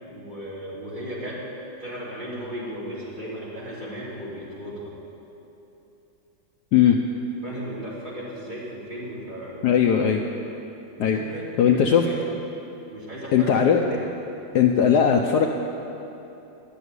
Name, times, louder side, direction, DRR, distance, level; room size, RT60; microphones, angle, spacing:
voice 1, 0.0-1.4 1.8-4.9 7.4-9.8 11.0-12.2 12.9-13.5 13.9-14.1, equal, 25° right, -8 dB, 3.5 m, -36 dB
voice 2, 9.6-10.2 11.0-11.2 11.6-12.1 13.3-14.0 14.5-15.5, left 8 dB, 70° left, 3 dB, 1.1 m, -18 dB
12.0 x 7.0 x 9.6 m, 2.9 s
omnidirectional pair, 2.1 m